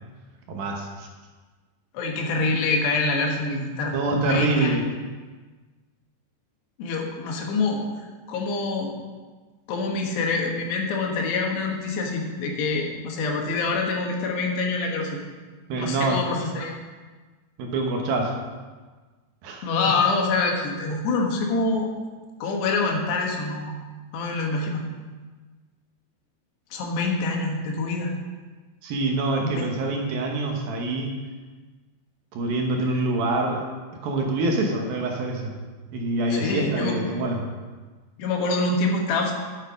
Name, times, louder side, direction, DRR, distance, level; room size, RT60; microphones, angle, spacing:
voice 1, 0.5-1.1 3.9-4.9 15.7-16.3 17.6-18.3 19.4-19.7 28.8-31.1 32.3-33.6 34.0-35.5 35.9-37.4, right 2 dB, 70° right, 1 dB, 2.8 m, -25 dB
voice 2, 1.9-4.8 6.8-7.8 8.3-8.9 9.7-15.2 15.8-16.8 19.6-21.9 22.4-23.7 24.1-24.8 26.7-28.1 29.4-29.7 36.3-37.0 38.2-39.3, left 3 dB, 80° left, 1 dB, 3.6 m, -25 dB
10.5 x 9.0 x 5.1 m, 1.4 s
omnidirectional pair, 4.8 m